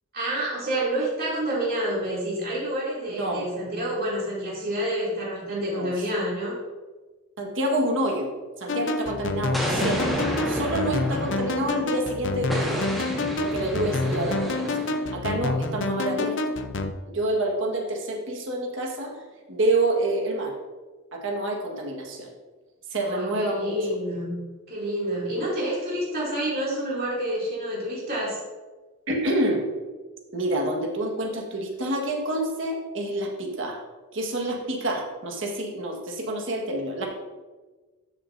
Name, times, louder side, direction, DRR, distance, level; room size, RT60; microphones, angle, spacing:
voice 1, 0.1-6.6 23.0-24.3 24.7-28.4, right 1 dB, 45° right, -7 dB, 2.7 m, -28 dB
voice 2, 3.1-3.4 5.7-5.9 7.4-8.3 8.6-12.9 13.4-16.6 17.1-19.2 19.5-20.5 21.1-22.3 22.9-23.7 29.1-29.7 30.3-33.8 34.1-37.1, right 1 dB, 60° right, 0 dB, 1.5 m, -28 dB
sound 1, 8.7-16.9, left 2 dB, 55° left, 0.6 m, -28 dB
Explosion, 9.5-12.0 12.5-15.1, right 1 dB, ahead, 1.4 m, -31 dB
12.5 x 6.7 x 2.6 m, 1.3 s
head